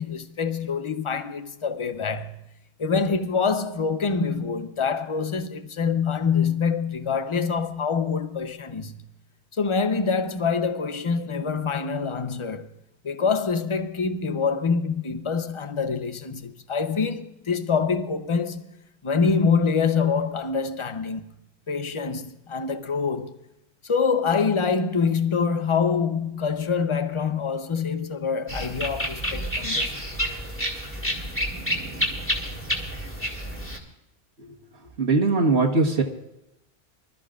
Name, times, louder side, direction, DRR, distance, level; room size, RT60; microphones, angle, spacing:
voice 1, 0.0-2.4 2.8-9.0 9.6-12.7 13.0-18.7 19.0-21.2 21.7-23.3 23.8-29.9, left 5 dB, 30° left, 0.8 m, -25 dB
sound 1, 28.5-33.8, equal, 10° left, 2.5 m, -29 dB
voice 2, 35.0-36.0, right 3 dB, 80° right, 1.7 m, -20 dB
25.0 x 13.0 x 2.5 m
omnidirectional pair, 1.1 m